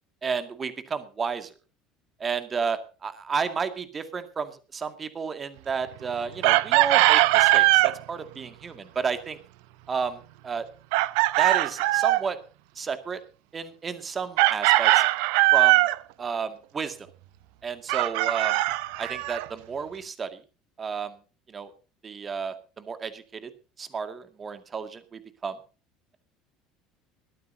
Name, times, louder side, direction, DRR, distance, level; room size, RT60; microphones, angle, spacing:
voice 1, 0.2-1.5 2.2-9.4 9.9-10.7 11.4-12.4 12.7-13.2 13.5-15.1 15.5-15.8 16.2-17.1 17.6-18.6 19.0-20.4 20.8-21.2 21.5-21.7 22.0-23.5 23.8-25.6, right 5 dB, 30° right, 8 dB, 2.2 m, -32 dB
Chicken rooster, 6.4-8.0 10.9-12.3 14.4-16.0 17.9-19.4, right 19 dB, 60° right, 0.8 m, -20 dB
21.0 x 14.5 x 2.8 m, 0.34 s
figure-of-eight pair, 65°, 0 cm